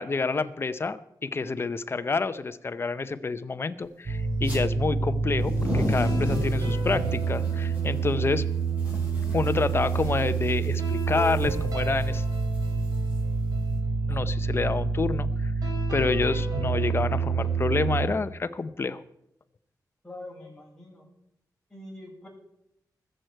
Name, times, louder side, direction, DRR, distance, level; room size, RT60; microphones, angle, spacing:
voice 1, 0.0-8.4 9.3-12.2 14.1-15.5 15.9-19.0, left 4 dB, 35° left, 12 dB, 0.7 m, -28 dB
sound 1, 4.1-18.1, right 4 dB, 65° right, 3.7 m, -27 dB
sound 2, 4.3-4.6 5.2-13.7, left 1 dB, 20° right, 5.6 m, -35 dB
voice 2, 20.0-21.1 21.7-22.3, left 1 dB, 10° left, -5 dB, 6.3 m, -43 dB
21.0 x 7.8 x 4.6 m, 0.82 s
wide cardioid pair, 110°, 7 cm